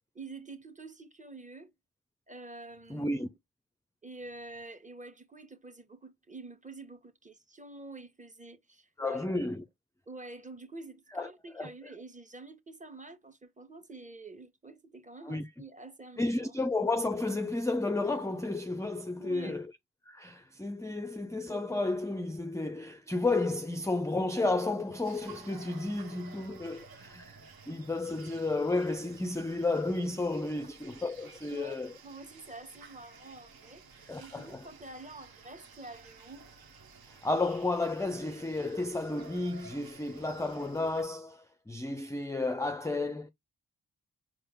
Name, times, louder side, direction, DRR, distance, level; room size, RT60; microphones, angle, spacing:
voice 1, 0.2-1.7 2.3-3.1 4.0-9.2 10.1-16.5 19.2-19.6 31.5-36.5, right 2 dB, 20° right, 1.1 m, -47 dB
voice 2, 2.9-3.3 9.0-9.6 11.2-11.3 11.6-11.7 15.3-15.4 16.2-19.7 20.1-31.9 34.1-34.6 37.0-43.3, left 2 dB, 10° left, 0.4 m, -32 dB
sound 1, 25.0-41.0, right 5 dB, 70° right, 1.0 m, -53 dB
4.4 x 2.0 x 3.6 m
supercardioid pair, 40°, 37 cm